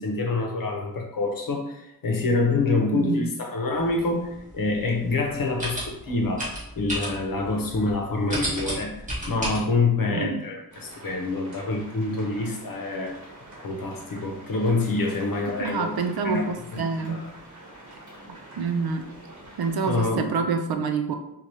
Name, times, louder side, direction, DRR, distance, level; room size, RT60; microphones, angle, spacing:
voice 1, 0.0-9.0 9.3-13.2 13.6-15.9 16.2-17.2 19.9-20.3, left 3 dB, 60° left, 2 dB, 0.8 m, -26 dB
voice 2, 2.9-3.3 10.0-10.4 15.6-17.2 18.6-19.1 19.6-21.1, right 5 dB, 75° right, 6 dB, 0.5 m, -27 dB
sound 1, 3.7-9.6, equal, 20° right, 1.4 m, -34 dB
sound 2, 10.7-20.0, right 1 dB, 50° right, 1.3 m, -46 dB
4.5 x 2.4 x 2.7 m, 0.82 s
wide cardioid pair, 150°, 38 cm